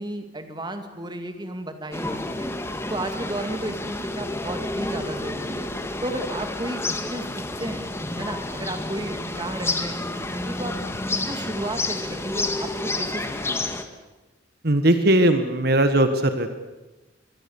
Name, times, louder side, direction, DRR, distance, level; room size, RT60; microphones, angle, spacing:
voice 1, 0.0-2.5 2.9-5.7 6.0-7.9 8.2-10.8 11.1-13.6, right 1 dB, 25° right, 7 dB, 2.2 m, -33 dB
sound 1, 1.9-13.8, left 2 dB, 15° left, 1.7 m, -30 dB
voice 2, 14.6-16.5, right 1 dB, 60° right, 9 dB, 1.6 m, -19 dB
24.5 x 22.5 x 7.2 m, 1.1 s
head